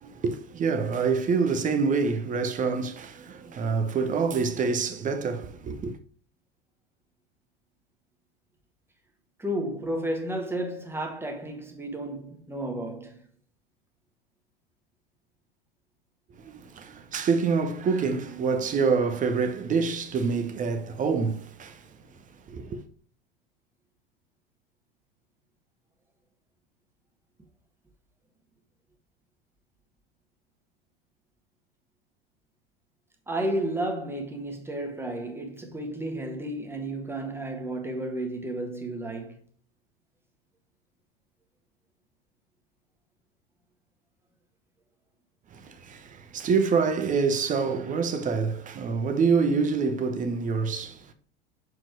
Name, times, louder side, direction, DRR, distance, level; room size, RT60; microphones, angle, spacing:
voice 1, 0.0-5.9 16.4-21.8 22.5-22.8 45.5-51.1, right 5 dB, 25° right, 1.0 m, -26 dB
voice 2, 9.4-13.2 33.3-39.4, right 1 dB, 10° right, 1.6 m, -32 dB
7.5 x 4.8 x 4.7 m
figure-of-eight pair, 75°, 29 cm